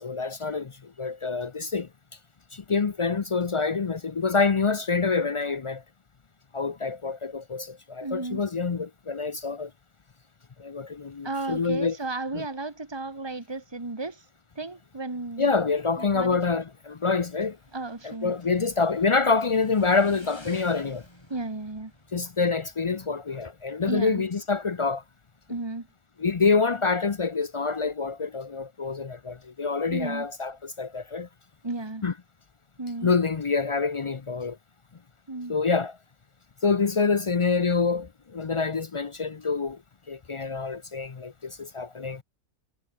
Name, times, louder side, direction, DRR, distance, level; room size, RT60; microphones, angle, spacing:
voice 1, 0.0-1.9 2.5-5.8 6.5-9.7 10.6-12.0 12.3-12.5 15.4-17.6 18.0-21.0 22.1-25.0 26.2-31.3 32.0-32.1 33.0-34.6 35.5-36.0 36.6-39.8 40.1-42.2, left 4 dB, 55° left, 0.3 m, -26 dB
voice 2, 8.0-8.5 11.2-14.2 14.6-15.5 16.0-16.6 17.7-18.3 21.3-21.9 23.9-24.2 25.5-25.9 29.9-30.3 31.6-32.0 32.8-33.1 35.3-35.5, right 2 dB, 15° right, 2.1 m, -34 dB
Motorcycle / Engine, 16.7-25.6, left 1 dB, 15° left, 4.8 m, -54 dB
omnidirectional pair, 1.5 m